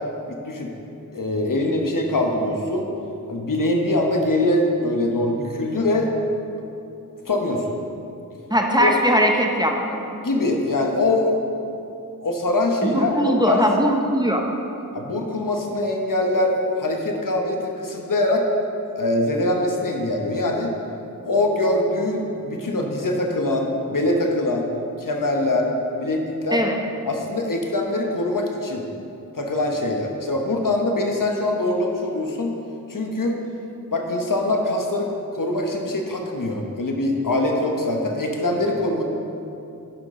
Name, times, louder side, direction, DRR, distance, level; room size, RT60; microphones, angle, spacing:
voice 1, 1.1-2.9 3.3-6.1 7.3-7.8 8.8-8.9 10.2-11.3 12.2-13.7 14.9-18.4 19.0-20.7 21.2-24.7 25.0-25.7 26.0-26.6 27.0-28.8 29.3-32.6 32.9-33.4 33.9-39.0, left 2 dB, 65° left, 1 dB, 1.1 m, -23 dB
voice 2, 8.5-10.0 12.8-14.5 26.5-26.7, equal, 10° right, 1 dB, 0.8 m, -20 dB
10.5 x 5.9 x 3.7 m, 2.7 s
wide cardioid pair, 55°, 35 cm